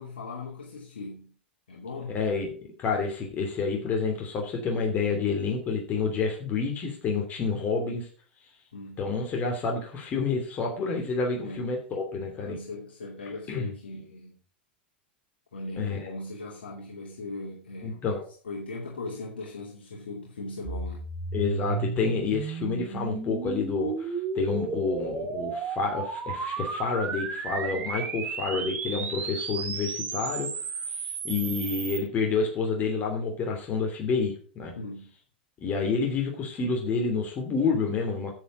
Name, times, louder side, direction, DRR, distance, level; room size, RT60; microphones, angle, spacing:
voice 1, 0.0-1.3 1.7-2.2 8.7-9.1 11.4-11.7 12.5-14.3 15.5-18.1 18.4-21.1 34.8-35.1, left 2 dB, 70° left, -3 dB, 2.6 m, -39 dB
voice 2, 2.1-2.5 2.8-8.1 9.0-12.6 13.5-13.7 15.8-16.1 17.8-18.2 21.3-30.5 30.9-34.7 35.6-38.3, left 4 dB, 30° left, 1 dB, 3.0 m, -29 dB
sound 1, 20.6-32.0, right 5 dB, 25° right, 2.3 m, -33 dB
10.0 x 8.0 x 5.1 m, 0.40 s
figure-of-eight pair, 95°, 6 cm